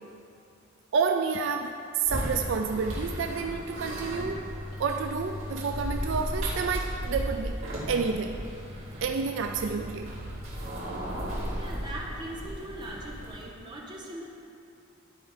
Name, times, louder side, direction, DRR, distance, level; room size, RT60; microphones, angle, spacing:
voice 1, 0.9-4.5 4.8-7.6 7.9-8.5 9.0-10.1, right 5 dB, 65° right, 5 dB, 0.4 m, -29 dB
sound 1, 2.0-13.5, equal, 90° right, 2.3 m, -35 dB
voice 2, 11.6-14.3, right 1 dB, 20° right, -3 dB, 1.3 m, -40 dB
11.5 x 4.5 x 5.7 m, 2.5 s
head